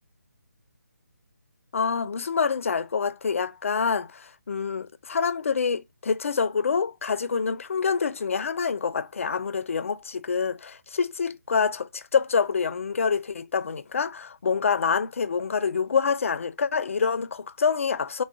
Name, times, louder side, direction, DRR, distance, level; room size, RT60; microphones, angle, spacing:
voice 1, 1.7-18.2, left 5 dB, 50° left, 0.3 m, -26 dB
4.6 x 2.1 x 2.4 m
figure-of-eight pair, 150°, 9 cm